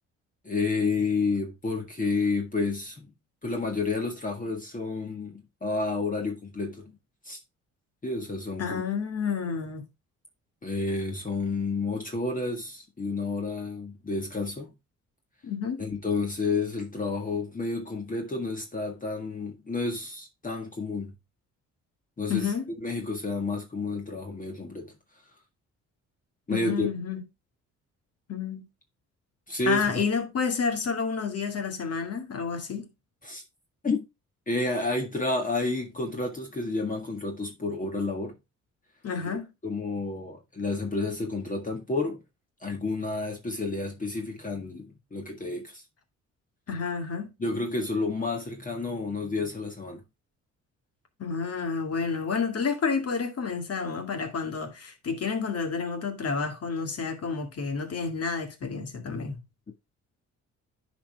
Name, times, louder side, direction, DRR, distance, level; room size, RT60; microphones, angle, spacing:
voice 1, 0.4-3.1 3.4-7.0 7.2-7.4 8.0-8.8 10.6-14.7 15.8-21.1 22.2-24.9 26.5-26.9 29.5-30.0 33.2-33.4 33.8-34.0 34.5-38.4 39.3-42.2 42.6-45.8 47.4-50.0, left 3 dB, 25° left, 1.7 m, -30 dB
voice 2, 8.6-9.8 15.4-15.8 22.3-22.7 26.5-27.2 28.3-28.7 29.7-32.9 39.0-39.5 46.7-47.3 51.2-59.4, left 5 dB, 55° left, 2.3 m, -30 dB
10.0 x 5.0 x 3.5 m
cardioid pair, 90°, 30 cm